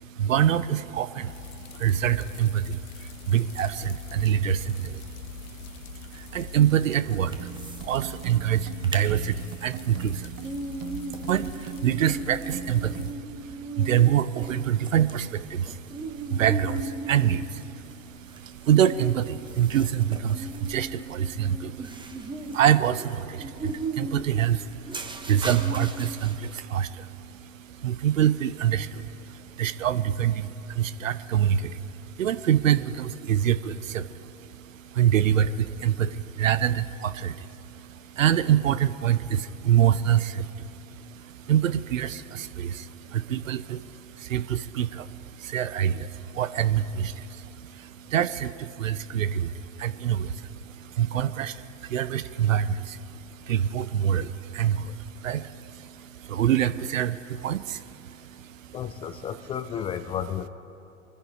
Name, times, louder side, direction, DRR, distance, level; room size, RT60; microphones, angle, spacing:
voice 1, 0.0-58.8, right 10 dB, 75° right, 14 dB, 0.8 m, -26 dB
sound 1, 1.2-13.1, left 7 dB, 50° left, 1.1 m, -44 dB
sound 2, 7.3-7.9 8.2-8.3 8.7-9.1 9.5-26.6, right 2 dB, 10° right, 1.2 m, -37 dB
sound 3, 7.4-13.1, right 16 dB, 30° right, 0.6 m, -42 dB
voice 2, 58.7-60.5, left 9 dB, 15° left, 11 dB, 0.3 m, -32 dB
25.0 x 10.0 x 5.0 m, 2.8 s
hypercardioid pair, 95°, 40 cm